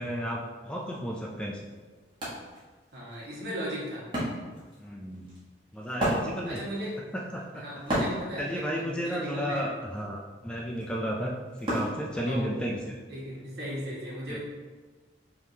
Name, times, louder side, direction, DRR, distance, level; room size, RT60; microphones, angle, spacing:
voice 1, 0.0-1.6 4.8-5.3 5.7-6.6 7.3-7.6 8.4-13.0 14.3-14.4, equal, 5° left, -2 dB, 0.3 m, -33 dB
Wood, 1.1-1.2 1.6-12.8, right 1 dB, 25° right, 1.2 m, -35 dB
voice 2, 2.9-4.0 6.4-6.9 7.5-9.7 12.2-12.6 13.1-14.4, equal, 65° right, -5 dB, 1.4 m, -37 dB
4.7 x 3.5 x 2.7 m, 1.4 s
head